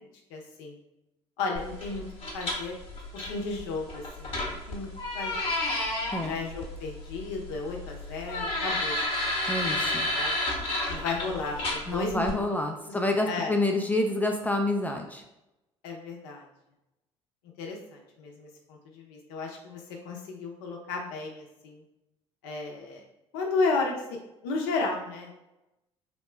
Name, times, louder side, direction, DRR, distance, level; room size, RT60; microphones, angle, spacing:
voice 1, 0.3-0.8 1.4-2.1 2.3-2.7 3.1-4.9 5.1-5.6 6.2-9.2 10.1-10.4 10.9-12.9 13.2-13.5 15.8-16.5 17.6-21.8 22.4-23.0 23.3-24.0 24.4-25.4, left 3 dB, 70° left, 1 dB, 0.7 m, -33 dB
sound 1, 1.6-12.3, left 1 dB, 40° left, 1.0 m, -32 dB
voice 2, 9.5-10.1 11.9-15.2, left 2 dB, 10° left, 3 dB, 0.4 m, -28 dB
2.9 x 2.1 x 3.2 m, 0.94 s
hypercardioid pair, 60°, 15 cm